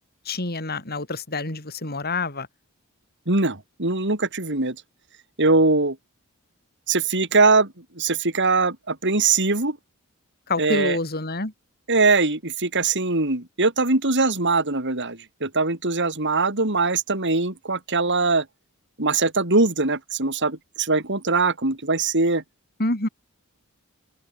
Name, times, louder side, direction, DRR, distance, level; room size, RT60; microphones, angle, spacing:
voice 1, 0.3-2.5 10.5-11.5 22.8-23.1, left 2 dB, 45° left, 4.3 m, -27 dB
voice 2, 3.3-4.8 5.4-6.0 6.9-9.8 10.6-11.0 11.9-18.5 19.0-22.4, right 3 dB, 55° right, 4.2 m, -22 dB
open air
head